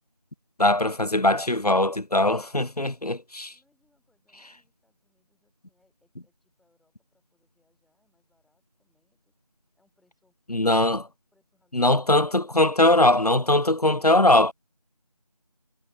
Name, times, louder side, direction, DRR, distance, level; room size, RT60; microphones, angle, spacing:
voice 1, 0.6-3.5 10.5-11.0 11.7-14.5, left 1 dB, 85° left, 1.7 m, -21 dB
voice 2, 3.5-9.3 9.7-10.8 11.3-12.1, left 2 dB, ahead, 5.0 m, -71 dB
figure-of-eight pair, 180°, 19 cm